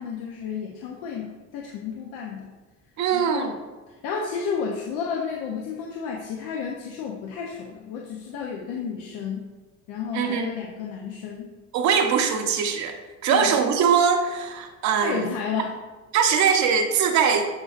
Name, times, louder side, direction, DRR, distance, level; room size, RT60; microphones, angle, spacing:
voice 1, 0.0-2.5 3.1-3.6 4.0-9.4 9.9-11.5 13.3-13.5 15.0-15.7, left 6 dB, 85° left, -1 dB, 0.9 m, -32 dB
voice 2, 3.0-3.5 10.1-10.5 11.7-15.3 16.1-17.5, right 7 dB, 65° right, 4 dB, 1.0 m, -22 dB
11.5 x 4.0 x 2.6 m, 1.3 s
cardioid pair, 125°, 31 cm